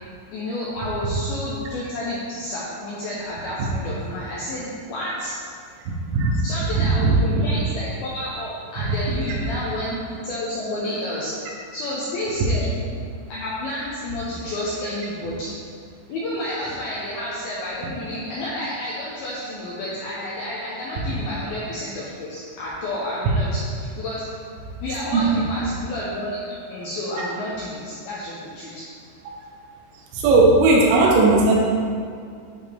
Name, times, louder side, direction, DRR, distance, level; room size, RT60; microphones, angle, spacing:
voice 1, 0.3-5.3 6.4-11.3 11.7-12.8 13.3-15.6 16.1-24.2 24.8-28.9, left 1 dB, 80° left, -7 dB, 2.2 m, -30 dB
voice 2, 6.1-6.4 6.7-7.4 8.8-8.9 9.3-9.4 25.1-25.5 27.2-27.3 30.1-31.6, right 3 dB, 85° right, -2 dB, 3.6 m, -17 dB
11.0 x 4.2 x 3.4 m, 2.3 s
omnidirectional pair, 5.6 m